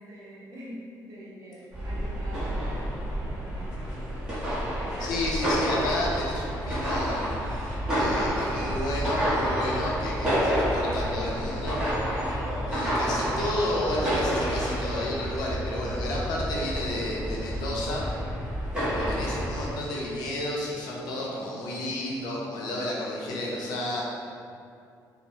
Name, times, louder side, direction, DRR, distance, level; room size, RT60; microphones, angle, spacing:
voice 1, 0.0-4.0 4.6-5.3 21.0-21.7, equal, 50° right, -6 dB, 0.6 m, -45 dB
sound 1, 1.7-19.7, equal, 10° right, 0.8 m, -29 dB
voice 2, 5.0-12.2 12.7-18.1 18.9-24.0, left 1 dB, 75° left, -4 dB, 0.5 m, -32 dB
3.0 x 2.0 x 2.6 m, 2.4 s
cardioid pair, 165°, 7 cm